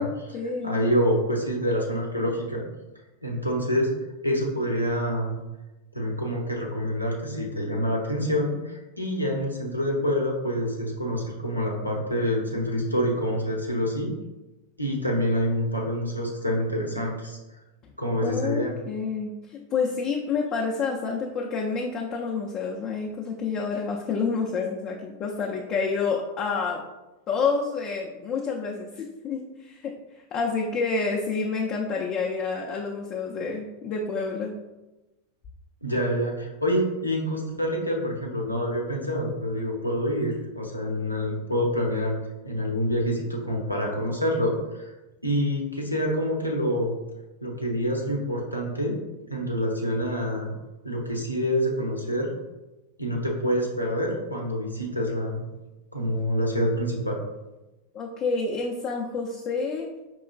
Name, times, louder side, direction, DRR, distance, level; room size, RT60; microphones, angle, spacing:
voice 1, 0.0-0.8 18.2-26.8 27.3-34.5 57.9-59.9, left 4 dB, 35° left, -1 dB, 0.4 m, -29 dB
voice 2, 0.6-2.6 3.2-3.9 4.2-5.4 5.9-14.1 14.8-17.4 18.0-18.7 35.8-42.2 42.4-44.9 45.2-46.9 47.4-49.0 49.3-50.5 50.8-52.3 53.0-55.4 55.9-57.2, equal, 90° left, -1 dB, 0.7 m, -26 dB
5.0 x 3.0 x 2.3 m, 1.1 s
figure-of-eight pair, 90°, 0 cm